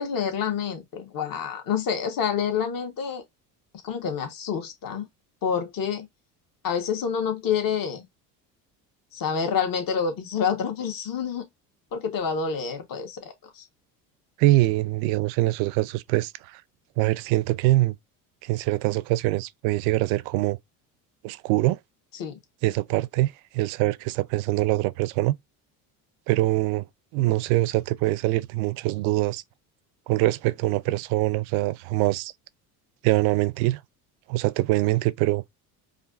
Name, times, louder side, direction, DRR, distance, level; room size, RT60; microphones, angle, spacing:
voice 1, 0.0-3.2 3.8-5.1 5.4-6.1 6.6-8.0 9.1-11.4 11.9-13.6 22.1-22.4, left 7 dB, 45° left, 1.4 m, -28 dB
voice 2, 14.4-16.6 17.0-18.0 18.4-20.6 21.2-21.8 22.6-25.4 26.3-26.9 27.1-29.4 30.1-32.3 33.0-33.8 34.3-35.4, right 18 dB, 70° right, 0.5 m, -24 dB
4.9 x 2.6 x 2.4 m
hypercardioid pair, 75°, 47 cm